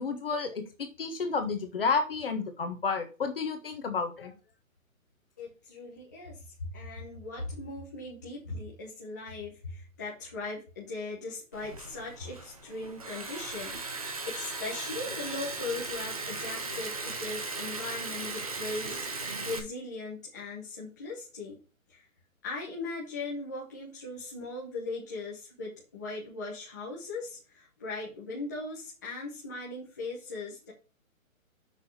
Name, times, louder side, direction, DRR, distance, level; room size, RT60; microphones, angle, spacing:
voice 1, 0.0-4.3, left 4 dB, 40° left, 6 dB, 1.5 m, -31 dB
voice 2, 5.4-6.4 6.7-19.0 19.4-21.6 21.9-22.0 22.4-30.7, left 3 dB, 15° left, -5 dB, 0.9 m, -39 dB
Liquid, 11.5-19.6, right 3 dB, 25° right, 0.8 m, -37 dB
6.4 x 5.2 x 5.4 m, 0.34 s
hypercardioid pair, 180°, 42 cm